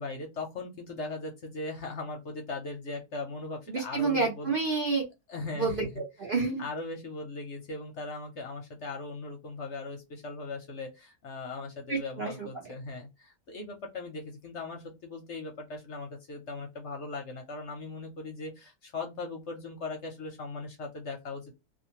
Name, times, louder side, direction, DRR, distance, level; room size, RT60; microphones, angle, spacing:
voice 1, 0.0-2.2 2.5-4.5 5.3-5.7 6.6-10.0 10.2-10.9 11.2-13.0 13.5-18.5 18.9-21.5, left 3 dB, 60° left, 3 dB, 0.8 m, -38 dB
voice 2, 3.7-5.0 5.6-6.6 11.9-12.5, right 4 dB, 50° right, 0 dB, 0.6 m, -29 dB
2.5 x 2.5 x 2.8 m, 0.23 s
omnidirectional pair, 1.6 m